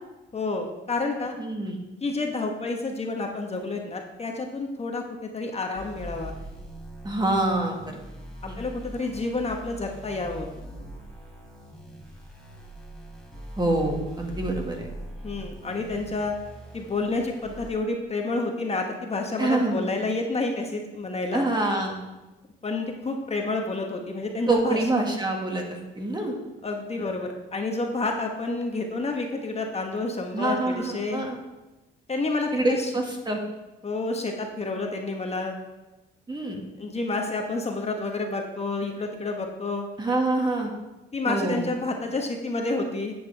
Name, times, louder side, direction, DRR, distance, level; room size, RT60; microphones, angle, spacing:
voice 1, 0.3-1.3 2.0-6.3 8.6-10.5 15.2-16.3 16.7-21.4 22.6-24.8 26.6-31.2 32.1-32.9 33.8-35.6 36.8-39.9 41.1-43.1, left 3 dB, 30° left, 2 dB, 1.2 m, -29 dB
voice 2, 1.4-1.8 7.0-8.0 8.5-8.6 13.6-14.9 19.4-19.8 21.3-22.0 24.5-26.4 30.3-31.4 32.5-33.4 36.3-36.6 40.0-40.7 41.2-41.7, right 2 dB, 20° right, 1 dB, 1.8 m, -26 dB
sound 1, 5.8-17.7, equal, 5° left, 3.5 m, -41 dB
10.5 x 8.1 x 3.4 m, 1.1 s
cardioid pair, 90°, 20 cm